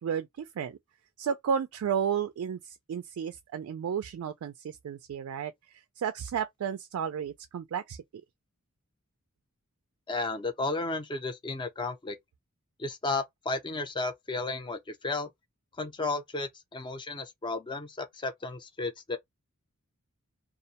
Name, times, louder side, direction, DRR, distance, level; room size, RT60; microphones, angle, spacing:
voice 1, 0.0-0.8 1.2-8.0, right 7 dB, 70° right, 0.3 m, -33 dB
voice 2, 10.1-12.2 12.8-15.3 15.8-19.2, left 3 dB, 20° left, 0.4 m, -33 dB
2.4 x 2.1 x 2.7 m
head